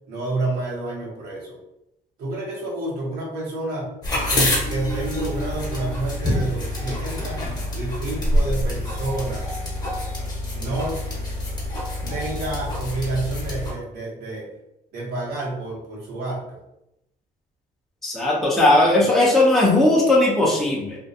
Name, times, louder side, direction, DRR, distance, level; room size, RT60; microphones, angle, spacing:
voice 1, 0.1-1.6 2.2-3.9 4.3-7.4 7.7-9.5 10.5-11.0 12.1-14.5 14.9-16.6, right 2 dB, 70° right, -4 dB, 1.0 m, -29 dB
sound 1, 4.0-13.7, left 1 dB, 25° left, 0.9 m, -26 dB
voice 2, 18.0-21.0, left 2 dB, ahead, -4 dB, 0.6 m, -17 dB
2.5 x 2.2 x 2.6 m, 0.84 s
cardioid pair, 110°, 17 cm